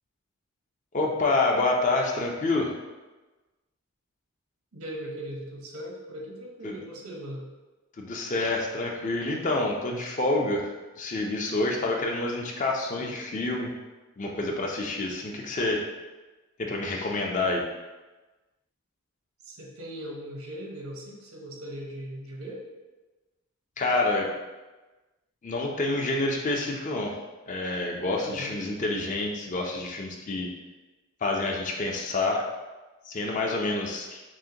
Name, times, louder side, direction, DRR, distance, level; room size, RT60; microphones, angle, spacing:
voice 1, 0.9-2.7 6.6-6.8 8.0-10.7 11.0-13.7 14.2-15.8 16.6-17.6 23.8-24.3 25.4-27.1 27.5-30.5 31.2-32.4 33.1-34.2, left 2 dB, 35° left, 1 dB, 0.5 m, -27 dB
voice 2, 4.7-7.5 12.9-13.1 19.4-22.6 28.2-28.6, equal, 80° right, -1 dB, 0.9 m, -39 dB
6.2 x 2.1 x 2.8 m, 1.2 s
head